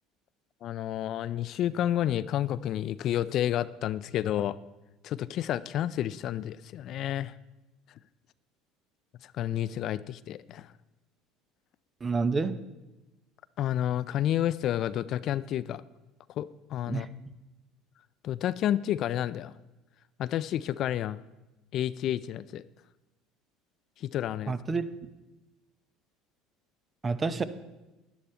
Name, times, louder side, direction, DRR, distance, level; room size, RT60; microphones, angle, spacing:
voice 1, 0.6-4.6 5.0-7.3 9.2-10.7 13.6-15.8 16.4-17.1 18.2-19.5 20.2-21.2 21.7-22.6 24.0-24.5, left 11 dB, 55° left, 16 dB, 0.3 m, -30 dB
voice 2, 12.0-12.6 16.9-17.1 24.5-25.1 27.0-27.4, right 4 dB, 25° right, 12 dB, 0.7 m, -29 dB
10.5 x 10.0 x 4.4 m, 1.0 s
supercardioid pair, 95°, 0 cm